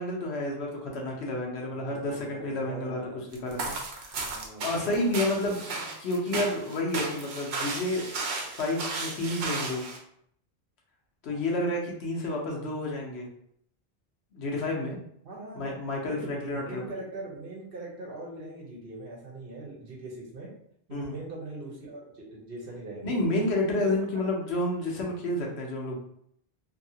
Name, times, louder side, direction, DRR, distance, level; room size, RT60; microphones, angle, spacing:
voice 1, 0.0-8.1 8.6-9.9 11.2-13.3 14.3-15.0 15.5-16.9 20.9-21.2 23.0-26.0, left 1 dB, 85° left, -1 dB, 1.0 m, -30 dB
voice 2, 1.7-3.2 4.2-5.3 11.3-11.4 15.2-15.7 16.1-20.5 20.9-23.2 23.6-24.0 24.5-24.6, right 2 dB, 60° right, -3 dB, 1.1 m, -41 dB
sound 1, 3.3-10.0, right 3 dB, 85° right, 0.9 m, -34 dB
2.8 x 2.7 x 2.7 m, 0.69 s
omnidirectional pair, 1.1 m